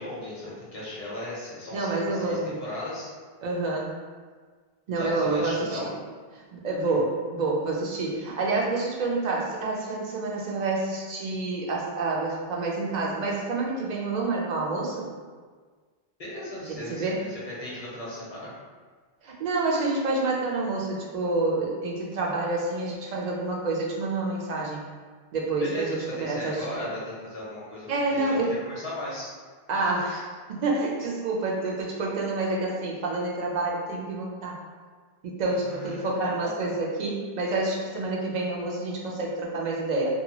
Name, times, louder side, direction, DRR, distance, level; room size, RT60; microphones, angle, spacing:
voice 1, 0.0-3.1 5.0-5.9 16.2-18.5 25.6-29.3 35.6-36.1 36.4-36.5, left 1 dB, 40° left, -7 dB, 0.8 m, -37 dB
voice 2, 1.7-2.6 3.4-3.9 4.9-5.9 6.3-15.1 16.6-17.3 19.2-24.8 25.3-26.7 27.9-28.6 29.7-34.6 35.2-40.1, right 2 dB, 55° right, -2 dB, 0.5 m, -28 dB
2.7 x 2.2 x 2.8 m, 1.5 s
omnidirectional pair, 1.1 m